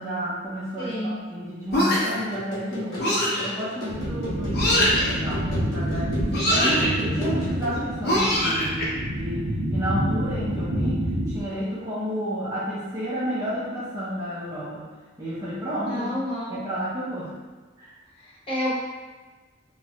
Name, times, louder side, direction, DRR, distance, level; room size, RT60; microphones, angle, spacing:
voice 1, 0.0-14.9 15.2-16.2 16.5-17.4 17.8-17.9, equal, 15° right, -10 dB, 0.5 m, -31 dB
voice 2, 0.8-1.2 15.9-16.6 18.2-18.7, left 1 dB, 25° left, -9 dB, 0.9 m, -29 dB
sound 1, 1.7-2.2 3.0-3.5 4.5-5.1 6.3-6.9 8.0-8.8, equal, 50° left, 0.7 m, -22 dB
darbuka accellerating, 2.1-7.8, equal, 70° left, 1.0 m, -38 dB
sound 2, 3.9-11.4, equal, 75° right, 0.5 m, -28 dB
3.0 x 2.3 x 2.8 m, 1.4 s
head